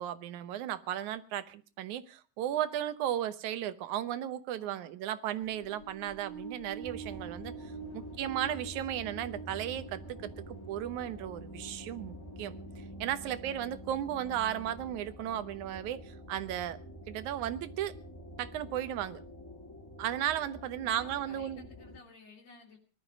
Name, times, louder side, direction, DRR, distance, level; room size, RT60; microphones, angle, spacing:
voice 1, 0.0-16.8 17.1-17.9 18.4-19.2 20.0-21.6, right 11 dB, 85° right, 13 dB, 2.4 m, -35 dB
voice 2, 4.6-4.9 7.9-8.4 13.2-13.7 20.8-22.8, left 4 dB, 65° left, 1 dB, 3.9 m, -56 dB
sound 1, 5.4-13.0, right 4 dB, 45° left, 3.3 m, -47 dB
sound 2, 6.8-22.0, equal, 20° left, 0.5 m, -47 dB
20.0 x 12.5 x 5.3 m, 0.39 s
omnidirectional pair, 3.4 m